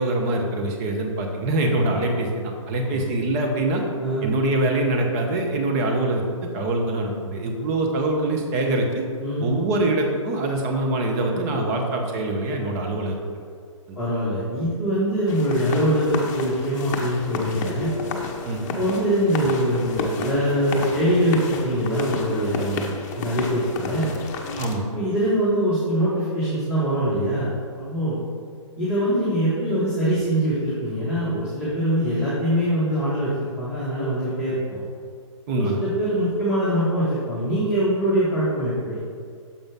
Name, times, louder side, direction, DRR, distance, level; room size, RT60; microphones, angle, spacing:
voice 1, 0.0-3.8 4.2-9.0 9.4-13.4 13.9-14.0 18.4-18.6 24.6-24.9 35.5-35.8, right 2 dB, 30° right, 2 dB, 0.9 m, -24 dB
voice 2, 14.0-17.9 18.8-22.8 23.2-24.1 24.9-28.2 28.8-34.8 35.6-39.0, equal, 5° right, -12 dB, 1.7 m, -23 dB
sound 1, 15.3-24.8, left 3 dB, 30° left, 0.7 m, -32 dB
7.2 x 5.1 x 3.6 m, 2.1 s
hypercardioid pair, 135°, 17 cm